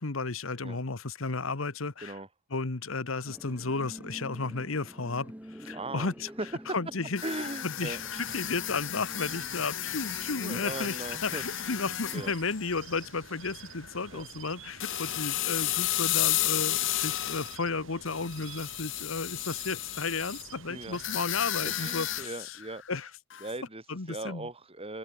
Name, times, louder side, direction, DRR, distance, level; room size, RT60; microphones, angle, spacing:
voice 1, 0.0-2.1 2.5-5.3 5.6-6.3 6.7-7.2 7.6-22.5 22.9-23.1 23.9-24.5, left 4 dB, 85° left, 1.3 m, -33 dB
sound 1, 3.3-12.3, equal, 10° right, 3.2 m, -48 dB
voice 2, 5.7-6.1 6.4-6.5 7.2-8.0 10.4-11.4 11.7-11.8 12.1-12.3 14.1-14.2 20.7-21.2 21.6-22.8 23.4-25.0, right 2 dB, 30° right, 5.3 m, -39 dB
sound 2, 7.2-13.3 13.6-13.9 14.8-17.6 18.0-20.4 20.9-22.9 23.3-23.5, left 15 dB, 65° left, 0.7 m, -33 dB
sound 3, 7.8-22.3, right 6 dB, 70° right, 6.0 m, -49 dB
head